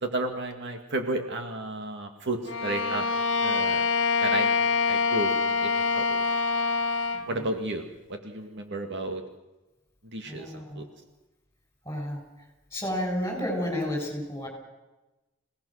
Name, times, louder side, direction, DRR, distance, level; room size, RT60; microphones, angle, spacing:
voice 1, 0.0-3.1 3.4-3.9 4.2-4.6 4.9-6.2 7.3-9.2 10.0-10.9, right 2 dB, 55° right, 5 dB, 2.1 m, -33 dB
Bowed string instrument, 2.5-7.3, left 4 dB, 60° left, 1.5 m, -25 dB
voice 2, 10.3-10.9 11.9-12.2 12.7-14.5, equal, 15° left, 2 dB, 7.4 m, -31 dB
27.0 x 18.0 x 6.5 m, 1.0 s
head